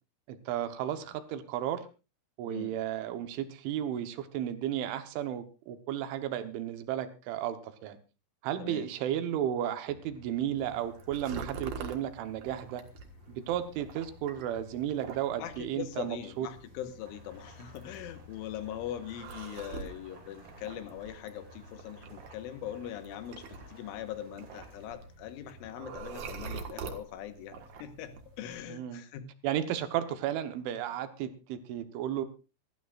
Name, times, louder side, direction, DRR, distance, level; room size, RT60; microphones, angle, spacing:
voice 1, 0.3-1.9 2.4-8.0 8.4-12.8 13.3-16.5 28.7-29.0 29.4-32.3, right 11 dB, 80° right, 9 dB, 3.5 m, -33 dB
sound 1, 9.9-26.0, left 4 dB, 50° left, 3.1 m, -57 dB
sound 2, 10.6-28.6, right 5 dB, 60° right, 2.0 m, -46 dB
voice 2, 15.4-29.3, left 11 dB, 85° left, 9 dB, 3.7 m, -41 dB
Rain, 17.0-24.9, right 3 dB, 40° right, 5.3 m, -58 dB
27.0 x 12.0 x 2.5 m, 0.31 s
omnidirectional pair, 5.5 m